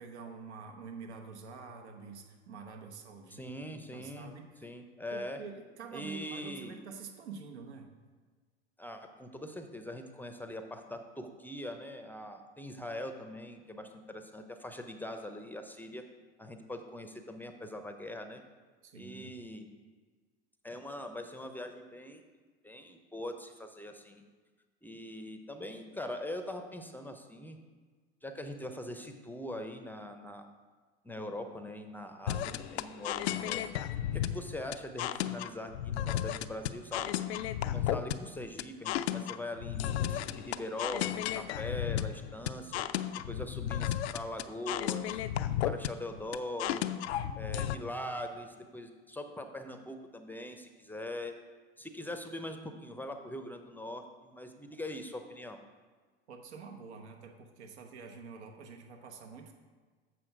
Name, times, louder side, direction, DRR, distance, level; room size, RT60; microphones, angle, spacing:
voice 1, 0.0-4.5 5.1-7.9 18.8-19.4 56.3-59.5, right 5 dB, 80° right, 3 dB, 1.1 m, -47 dB
voice 2, 3.3-4.3 4.6-5.4 5.9-6.8 8.8-16.0 16.4-18.4 18.9-19.7 20.6-22.2 22.6-24.2 24.8-27.6 28.2-30.4 31.0-33.7 34.1-37.1 37.6-42.9 43.3-45.2 45.6-46.8 47.3-51.4 51.8-55.6, left 1 dB, 5° left, 6 dB, 0.6 m, -42 dB
sound 1, 32.3-47.7, left 11 dB, 75° left, 0.5 m, -34 dB
7.7 x 6.0 x 4.6 m, 1.4 s
hypercardioid pair, 85°, 33 cm